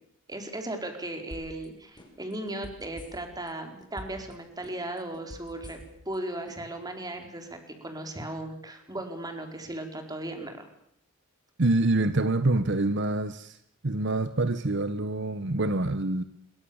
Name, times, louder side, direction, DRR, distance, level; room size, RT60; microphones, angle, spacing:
voice 1, 0.3-5.8 6.0-10.7, right 1 dB, 20° right, 5 dB, 4.5 m, -37 dB
sound 1, 1.3-1.7 2.0-3.5 3.8-4.3 4.6-6.2 6.5-6.6, equal, 20° left, 5.9 m, -44 dB
voice 2, 11.6-13.6 13.8-16.2, right 2 dB, 55° right, 12 dB, 1.0 m, -26 dB
26.5 x 23.0 x 7.2 m, 0.69 s
head